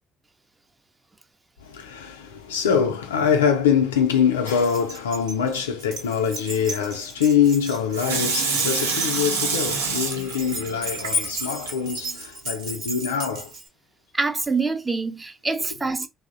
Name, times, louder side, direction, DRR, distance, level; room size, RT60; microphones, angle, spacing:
voice 1, 1.6-13.5, left 7 dB, 85° left, 0.4 m, -24 dB
Keys jangling, 4.5-13.7, equal, 70° right, 0.8 m, -34 dB
Water tap faucet / Sink (filling or washing), 7.9-11.7 12.2-12.3, right 4 dB, 85° right, 0.4 m, -27 dB
voice 2, 14.1-16.1, right 3 dB, 20° right, 0.5 m, -25 dB
2.6 x 2.0 x 2.4 m
hypercardioid pair, 55°, 0 cm